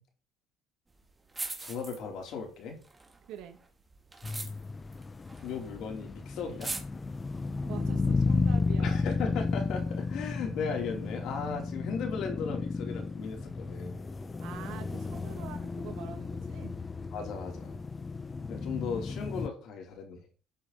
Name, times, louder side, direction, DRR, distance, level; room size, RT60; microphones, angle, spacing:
sound 1, 1.0-1.1 1.3-2.4 2.7-5.8 6.1-6.2 6.4-6.8, right 3 dB, 15° right, 2.3 m, -40 dB
voice 1, 1.6-2.8 5.4-6.7 8.8-14.0 17.1-17.8 18.5-20.3, left 5 dB, 65° left, 2 dB, 4.5 m, -37 dB
voice 2, 3.3-3.6 7.7-9.0 14.4-16.8, right 10 dB, 80° right, 7 dB, 2.3 m, -44 dB
sound 2, 4.2-19.5, left 4 dB, 20° left, 0.8 m, -33 dB
13.5 x 7.8 x 4.5 m, 0.36 s
cardioid pair, 125°, 0 cm